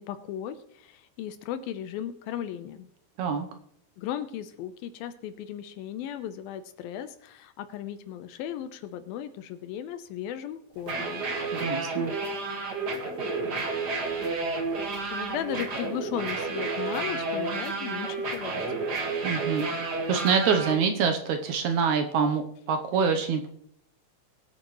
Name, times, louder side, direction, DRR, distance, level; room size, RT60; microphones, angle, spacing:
voice 1, 0.0-2.9 4.0-11.3 14.8-18.9, left 10 dB, 90° left, 10 dB, 2.7 m, -36 dB
sound 1, 10.8-20.7, right 3 dB, 45° right, 1.4 m, -31 dB
voice 2, 11.5-12.1 19.2-19.7 20.1-23.5, right 6 dB, 70° right, 6 dB, 2.0 m, -25 dB
21.0 x 8.5 x 3.1 m, 0.67 s
omnidirectional pair, 4.1 m